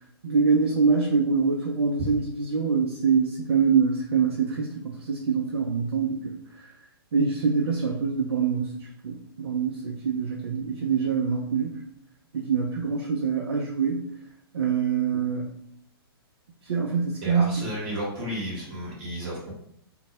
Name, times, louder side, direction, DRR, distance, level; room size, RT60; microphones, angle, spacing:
voice 1, 0.2-6.7 7.1-11.8 12.3-14.1 14.5-15.5 16.6-17.7, right 5 dB, 85° right, 0 dB, 0.4 m, -25 dB
voice 2, 17.2-19.5, equal, 35° right, -5 dB, 0.9 m, -32 dB
2.2 x 2.0 x 2.7 m, 0.70 s
hypercardioid pair, 135°, 13 cm